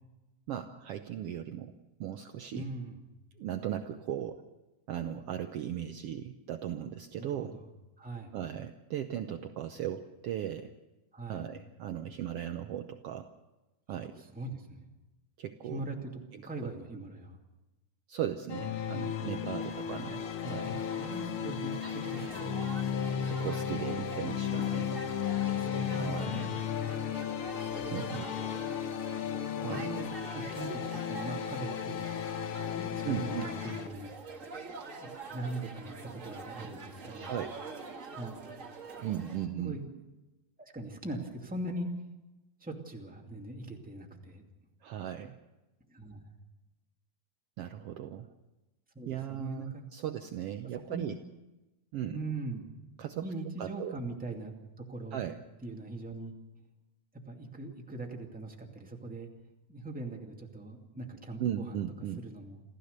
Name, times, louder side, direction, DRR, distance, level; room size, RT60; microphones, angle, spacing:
voice 1, 0.5-1.7 2.0-2.7 3.4-4.4 4.9-7.6 8.3-10.7 11.3-13.3 13.9-14.2 15.4-15.9 16.3-16.4 18.1-20.2 20.5-20.8 23.2-25.0 25.9-26.6 27.9-28.3 29.6-29.9 33.0-33.5 37.1-37.6 39.0-39.8 44.8-45.4 47.6-48.3 49.1-51.2 51.9-52.2 53.0-53.3 53.6-54.0 55.1-55.4 61.4-62.2, right 10 dB, 80° right, 7 dB, 1.3 m, -37 dB
voice 2, 2.5-3.0 7.2-7.6 8.0-8.3 11.1-11.5 13.9-14.8 15.6-16.1 16.4-17.4 19.3-19.4 20.4-22.5 25.4-26.7 27.7-28.1 29.6-30.1 30.3-32.1 32.6-34.1 35.0-37.4 38.1-38.4 39.6-40.0 40.6-41.9 42.6-44.5 45.9-46.2 48.9-49.9 50.7-51.2 52.1-52.7 53.2-54.5 54.9-55.2 55.6-56.3 57.3-59.3 59.7-61.8 62.2-62.6, right 2 dB, 5° right, 0 dB, 1.8 m, -41 dB
sound 1, 18.5-33.9, left 8 dB, 60° left, 1.4 m, -34 dB
sound 2, 19.6-39.5, right 3 dB, 30° right, 1.6 m, -46 dB
27.5 x 14.5 x 6.7 m, 1.1 s
omnidirectional pair, 3.7 m